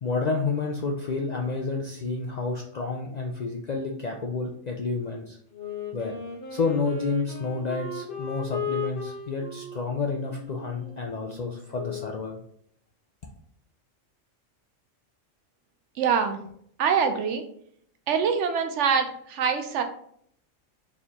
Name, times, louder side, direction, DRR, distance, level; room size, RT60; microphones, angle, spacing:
voice 1, 0.0-5.4 5.9-6.1 6.5-12.4, left 4 dB, 70° left, 1 dB, 0.4 m, -30 dB
Wind instrument woodwind instrument, 5.5-12.2, left 5 dB, 45° left, 1.0 m, -37 dB
voice 2, 16.0-16.4 16.8-17.4 18.1-19.8, right 6 dB, 70° right, 7 dB, 0.9 m, -24 dB
4.3 x 3.5 x 2.8 m, 0.65 s
omnidirectional pair, 1.3 m